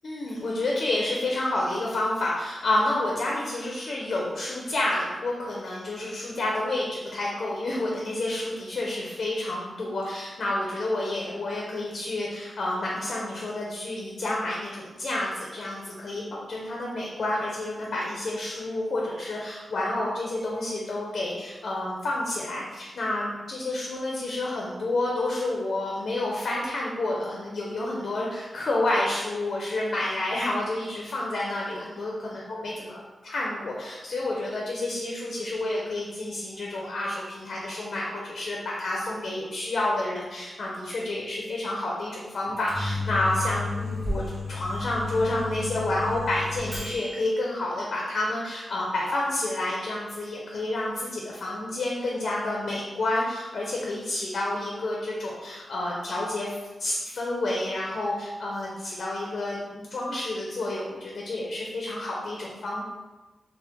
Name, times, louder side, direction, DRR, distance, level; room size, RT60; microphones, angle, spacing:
voice 1, 0.0-33.0 33.2-62.8, left 2 dB, 65° left, -3 dB, 0.5 m, -29 dB
Microwave oven, 42.4-47.2, left 3 dB, 60° right, 1.0 m, -32 dB
3.4 x 2.1 x 2.9 m, 1.2 s
wide cardioid pair, 100°, 0 cm